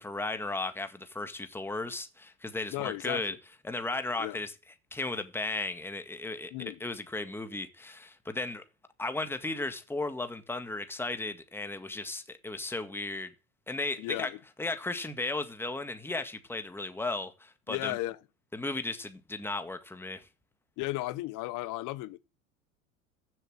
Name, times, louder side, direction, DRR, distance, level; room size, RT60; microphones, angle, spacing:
voice 1, 0.0-3.3 3.6-4.5 4.9-8.6 9.0-13.3 13.7-14.3 14.6-18.0 18.5-20.2, left 2 dB, 5° left, 1.8 m, -35 dB
voice 2, 2.7-3.4 4.2-4.4 6.5-6.8 14.0-14.4 17.7-18.2 20.8-22.2, left 18 dB, 50° left, 1.3 m, -35 dB
15.0 x 7.9 x 7.5 m
hypercardioid pair, 85°, 41 cm